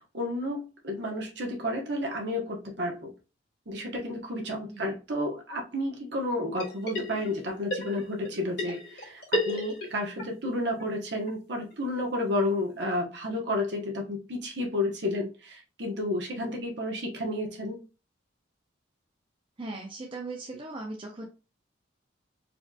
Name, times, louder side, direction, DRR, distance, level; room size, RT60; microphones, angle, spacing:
voice 1, 0.1-3.1 3.7-17.8, left 1 dB, 60° right, 1.1 m, -31 dB
sound 1, 6.6-7.4 7.7-10.2 10.5-10.6 10.8-10.9 11.3-11.4 11.7-11.8 12.0-12.1 12.5-12.6, equal, 50° left, 1.6 m, -33 dB
voice 2, 19.6-21.3, right 2 dB, 25° right, 0.5 m, -38 dB
4.2 x 2.9 x 2.3 m
head